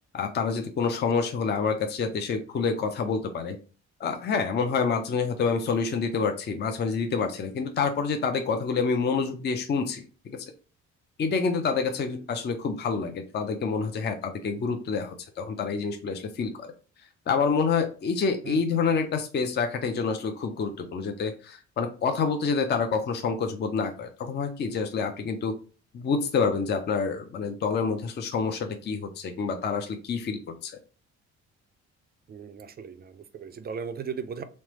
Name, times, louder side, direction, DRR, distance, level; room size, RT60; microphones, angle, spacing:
voice 1, 0.1-3.6 4.0-10.4 11.2-16.7 17.3-25.5 25.9-30.8, left 5 dB, 35° left, 0.5 m, -27 dB
voice 2, 32.3-34.4, right 6 dB, 35° right, 0.4 m, -37 dB
3.2 x 2.0 x 2.9 m
cardioid pair, 90°, 30 cm